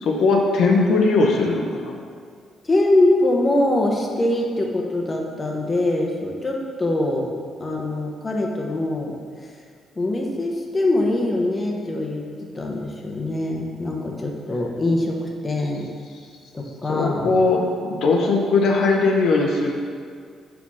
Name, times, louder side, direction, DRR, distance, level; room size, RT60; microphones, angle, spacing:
voice 1, 0.0-2.0 16.9-19.7, left 3 dB, 70° left, 0 dB, 0.8 m, -19 dB
voice 2, 2.6-7.3 7.6-9.2 9.4-9.5 10.0-15.9 16.5-17.4, left 1 dB, 25° left, 0 dB, 0.9 m, -23 dB
5.7 x 4.3 x 4.8 m, 2.1 s
cardioid pair, 90°, 0 cm